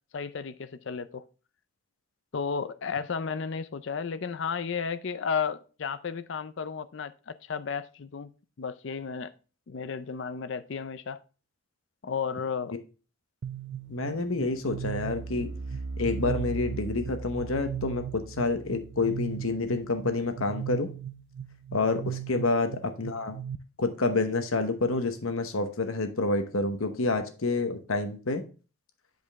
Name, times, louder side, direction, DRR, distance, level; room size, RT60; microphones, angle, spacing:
voice 1, 0.1-1.2 2.3-8.3 8.6-9.3 9.7-11.2 12.0-12.8 22.4-22.5, left 6 dB, 55° left, 13 dB, 0.4 m, -33 dB
sound 1, 13.4-23.6, right 6 dB, 55° right, 0.4 m, -37 dB
voice 2, 13.9-15.5 16.0-20.9 21.7-23.4 23.8-28.4, left 3 dB, 75° left, 8 dB, 1.0 m, -28 dB
8.0 x 5.2 x 3.5 m, 0.35 s
head